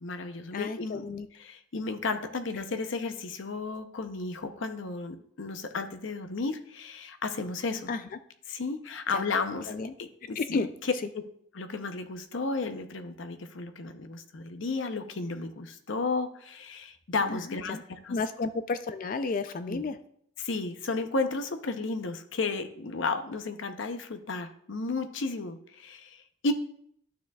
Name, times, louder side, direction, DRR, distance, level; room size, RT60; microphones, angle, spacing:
voice 1, 0.0-1.0 1.4-7.9 8.5-9.7 10.0-10.7 11.5-18.2 19.7-19.8 20.4-26.5, left 3 dB, 70° left, 8 dB, 0.7 m, -33 dB
voice 2, 0.5-1.3 7.9-8.0 9.1-9.3 9.7-9.9 10.4-10.7 17.3-17.8 18.1-20.0, left 4 dB, 45° left, 11 dB, 0.3 m, -32 dB
11.0 x 7.0 x 2.3 m, 0.67 s
head